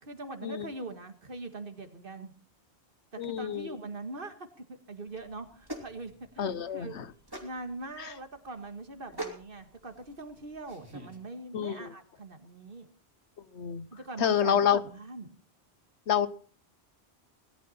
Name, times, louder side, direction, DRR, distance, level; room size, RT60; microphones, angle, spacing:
voice 1, 0.0-2.3 3.1-7.0 7.4-12.9 13.9-15.4, right 2 dB, 55° right, 8 dB, 1.9 m, -42 dB
voice 2, 3.2-3.8 6.4-7.1 8.0-8.1 11.5-11.9 13.5-13.9 14.2-14.8 16.1-16.3, left 8 dB, 90° left, 15 dB, 1.2 m, -28 dB
sound 1, 5.1-11.2, right 1 dB, 20° right, 3.0 m, -45 dB
18.5 x 12.0 x 4.3 m, 0.43 s
omnidirectional pair, 1.1 m